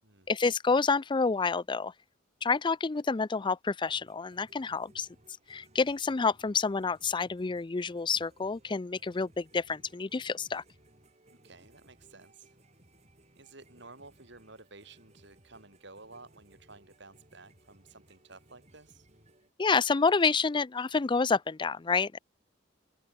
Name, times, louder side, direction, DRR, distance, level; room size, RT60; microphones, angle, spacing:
voice 1, 0.3-1.9 2.4-5.1 5.5-10.6 19.6-22.2, left 4 dB, 25° left, 0.5 m, -28 dB
sound 1, 3.9-19.5, right 1 dB, 35° right, 6.1 m, -62 dB
voice 2, 11.3-12.6 13.3-19.1, right 3 dB, 65° right, 7.7 m, -53 dB
open air
head